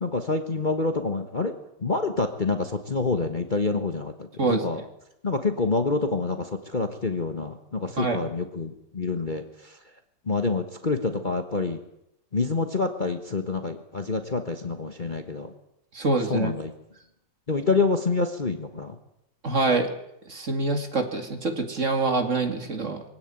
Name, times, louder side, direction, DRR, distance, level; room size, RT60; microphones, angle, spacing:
voice 1, 0.0-1.6 1.8-4.1 4.5-4.8 5.2-9.4 10.3-11.8 12.3-15.5 16.3-16.7 17.5-19.0, left 3 dB, 30° left, 6 dB, 1.4 m, -27 dB
voice 2, 4.4-4.7 8.0-8.2 15.9-16.5 19.4-19.9 20.3-23.0, right 3 dB, 40° right, 6 dB, 2.7 m, -25 dB
23.0 x 16.5 x 9.1 m, 0.82 s
omnidirectional pair, 2.0 m